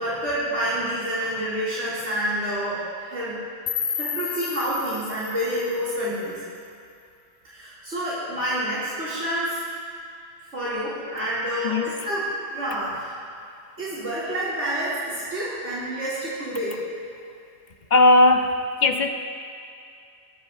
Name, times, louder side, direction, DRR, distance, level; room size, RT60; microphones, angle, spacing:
voice 1, 0.0-3.4 3.9-6.4 7.5-9.6 10.4-12.2 12.5-13.2 13.8-16.8, equal, 75° right, -11 dB, 3.0 m, -28 dB
sound 1, 3.7-6.7, left 8 dB, 85° left, 1.1 m, -32 dB
voice 2, 11.6-11.9 17.9-19.1, left 2 dB, 45° left, 6 dB, 0.8 m, -18 dB
20.0 x 15.0 x 2.6 m, 2.3 s
omnidirectional pair, 1.2 m